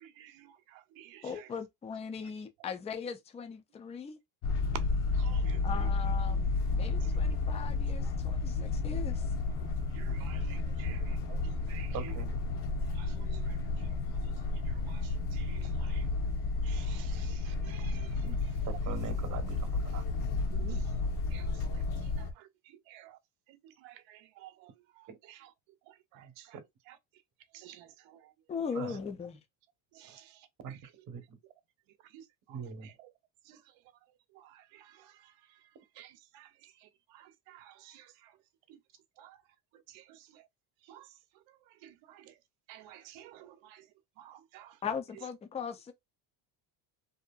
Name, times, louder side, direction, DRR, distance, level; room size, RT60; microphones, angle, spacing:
voice 1, 0.0-0.5 1.0-1.2 5.2-5.6 9.9-11.0 11.7-11.9 13.0-13.3 14.9-15.0 15.3-16.0 16.6-18.1 20.5-20.8 21.3-21.5 22.2-22.3 22.9-23.1 23.8-24.7 25.3-25.4 26.2-26.3 27.5-27.9 30.0-30.2 32.1-32.2 33.5-33.6 34.7-34.8 36.0-36.5 37.5-38.0 39.2-39.4 40.9-41.0 41.8-42.2 42.7-43.8 44.2-44.7, right 12 dB, 70° right, 0.7 m, -52 dB
voice 2, 1.2-4.2 5.6-9.3 28.5-29.4 44.8-45.9, left 6 dB, 15° left, 0.3 m, -39 dB
sound 1, 4.4-22.3, left 3 dB, 55° left, 0.9 m, -32 dB
voice 3, 11.9-12.3 18.2-18.4 18.7-20.0 25.1-25.2 26.2-26.3 28.7-29.0 30.0-30.2 30.6-30.8 31.1-31.2 32.5-32.9, right 7 dB, 40° right, 1.0 m, -42 dB
2.7 x 2.5 x 2.2 m
cardioid pair, 120°, 48 cm